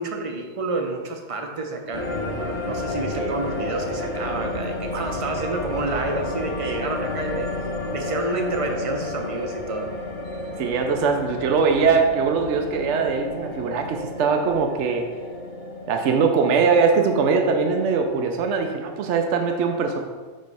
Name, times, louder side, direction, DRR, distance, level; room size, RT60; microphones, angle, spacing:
voice 1, 0.0-7.5 7.9-9.9, right 3 dB, 35° right, 3 dB, 0.6 m, -29 dB
sound 1, 1.9-18.5, left 2 dB, 25° left, 1.0 m, -32 dB
voice 2, 10.6-15.1 15.9-20.0, right 5 dB, 75° right, 4 dB, 0.9 m, -21 dB
7.5 x 3.2 x 5.4 m, 1.5 s
omnidirectional pair, 1.2 m